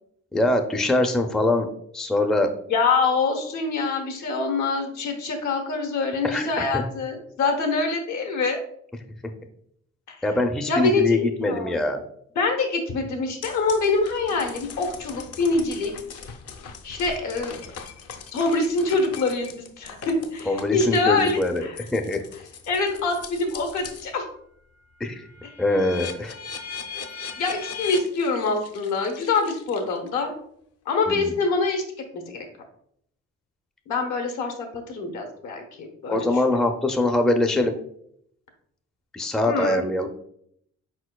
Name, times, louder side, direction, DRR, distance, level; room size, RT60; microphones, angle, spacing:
voice 1, 0.3-1.7 1.9-2.5 6.2-6.8 10.2-12.0 20.5-21.6 21.9-22.2 25.0-25.2 25.6-26.3 31.1-31.3 36.1-37.7 39.1-40.1, left 2 dB, ahead, 5 dB, 0.4 m, -23 dB
voice 2, 2.7-8.6 10.1-10.2 10.7-11.8 12.3-15.9 16.8-17.6 18.3-21.8 22.7-24.2 27.4-30.3 30.9-31.8 32.1-32.5 33.9-36.6 39.4-39.8, left 3 dB, 75° left, 3 dB, 1.1 m, -25 dB
sound 1, 13.4-24.1 24.5-30.2, left 6 dB, 55° left, 0.6 m, -40 dB
4.3 x 4.3 x 2.2 m, 0.69 s
cardioid pair, 90°, 30 cm